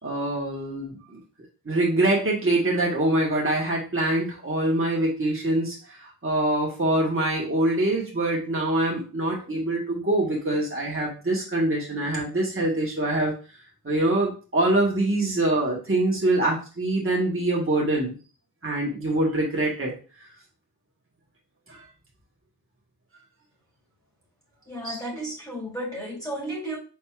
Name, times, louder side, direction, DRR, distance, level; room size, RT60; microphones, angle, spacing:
voice 1, 0.0-1.2 1.6-13.3 13.8-18.2 18.6-19.9 21.7-21.8 24.8-24.9, right 1 dB, 35° right, -3 dB, 1.5 m, -24 dB
voice 2, 24.7-26.8, right 1 dB, 10° left, -4 dB, 2.3 m, -33 dB
4.7 x 4.0 x 2.4 m, 0.36 s
wide cardioid pair, 45°, 37 cm